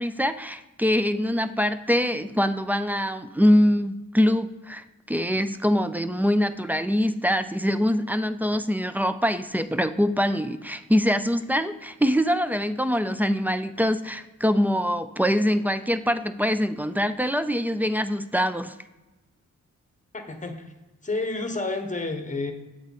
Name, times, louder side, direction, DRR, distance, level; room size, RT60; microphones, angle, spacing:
voice 1, 0.0-18.7, equal, 5° right, 11 dB, 0.3 m, -24 dB
voice 2, 20.1-20.7 21.0-22.5, left 3 dB, 25° left, 6 dB, 1.1 m, -30 dB
7.8 x 4.7 x 4.1 m, 1.1 s
cardioid pair, 70°, 30 cm